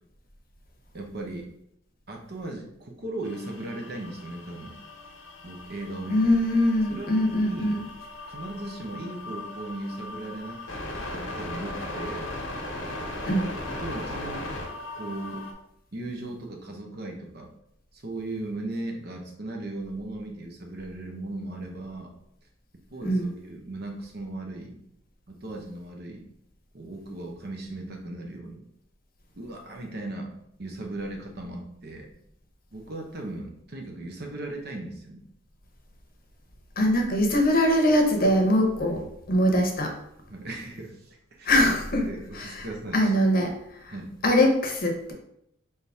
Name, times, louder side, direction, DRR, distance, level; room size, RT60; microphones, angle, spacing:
voice 1, 0.9-1.5 2.1-4.8 5.4-6.2 6.9-7.8 8.3-10.6 11.1-12.3 13.7-14.5 14.9-15.5 15.9-17.5 17.9-22.1 22.9-24.8 25.3-26.3 26.7-28.6 29.3-30.3 30.6-32.1 32.7-35.2 38.8-38.9 40.3-41.5 42.0-43.0 43.5-43.6 43.9-44.1, right 2 dB, 50° right, 1 dB, 0.8 m, -37 dB
sound 1, 3.2-15.5, left 2 dB, 90° left, 1.0 m, -38 dB
voice 2, 6.1-7.8 13.3-13.5 23.0-23.3 36.8-39.9 41.4-42.1 42.3-42.7 42.9-43.9 44.2-45.1, left 1 dB, 45° left, 2 dB, 0.8 m, -22 dB
3.7 x 2.8 x 4.7 m, 0.76 s
head